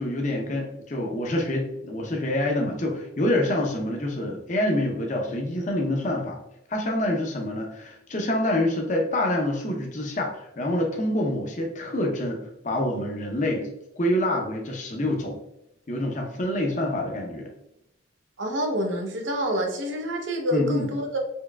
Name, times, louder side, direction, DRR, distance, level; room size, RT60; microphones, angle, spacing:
voice 1, 0.0-6.4 6.7-13.7 14.0-15.4 15.9-17.5 20.5-20.9, left 1 dB, 40° left, 1 dB, 0.6 m, -26 dB
voice 2, 18.4-21.2, equal, 85° right, 2 dB, 0.8 m, -27 dB
4.6 x 3.1 x 2.2 m, 0.84 s
head